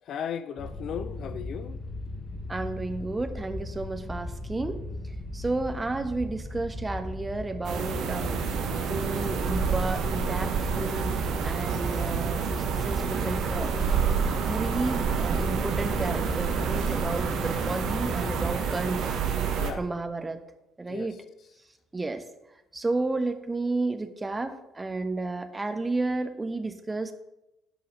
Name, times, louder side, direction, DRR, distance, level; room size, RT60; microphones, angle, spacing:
voice 1, 0.1-1.8 19.6-19.8 20.9-21.2, left 8 dB, 55° left, 0.5 m, -36 dB
sound 1, 0.6-18.5, left 1 dB, 35° left, 1.9 m, -38 dB
voice 2, 2.5-4.8 5.3-8.4 8.9-11.1 11.4-13.7 14.4-19.1 19.8-20.4 20.8-21.1 21.9-22.2 22.7-27.1, right 2 dB, 20° right, 1.2 m, -32 dB
sound 2, 7.6-19.7, right 6 dB, 60° right, 1.2 m, -28 dB
10.5 x 5.6 x 6.7 m
figure-of-eight pair, 50°, 0 cm